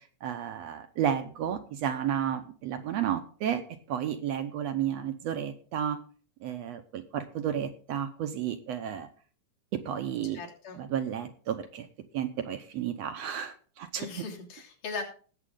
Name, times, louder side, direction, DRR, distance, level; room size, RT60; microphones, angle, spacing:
voice 1, 0.2-3.6 3.9-6.0 6.4-9.1 9.7-10.4 10.8-11.9 12.1-14.1, right 9 dB, 70° right, 8 dB, 1.7 m, -32 dB
voice 2, 10.2-10.8 14.0-15.0, left 4 dB, 80° left, -3 dB, 4.6 m, -39 dB
18.5 x 7.4 x 3.8 m, 0.41 s
omnidirectional pair, 3.7 m